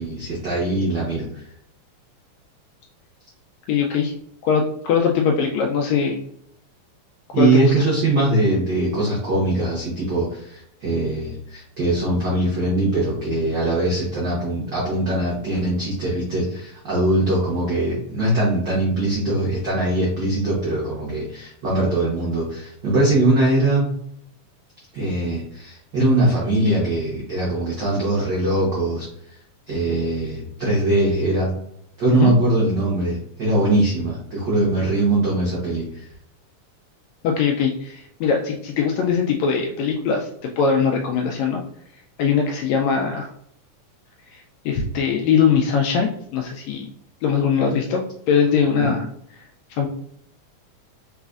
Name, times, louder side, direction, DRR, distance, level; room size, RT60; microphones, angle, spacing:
voice 1, 0.0-1.4 7.3-23.9 24.9-29.1 29.7-31.5 32.0-36.1 48.8-48.9, right 2 dB, 80° right, -5 dB, 1.0 m, -21 dB
voice 2, 3.7-4.1 4.4-6.2 7.3-7.7 32.1-32.3 37.2-41.6 42.2-43.3 44.3-46.9 47.2-48.0 48.3-49.0 49.8-49.9, left 6 dB, 80° left, 2 dB, 1.6 m, -21 dB
4.0 x 4.0 x 2.4 m, 0.71 s
omnidirectional pair, 3.6 m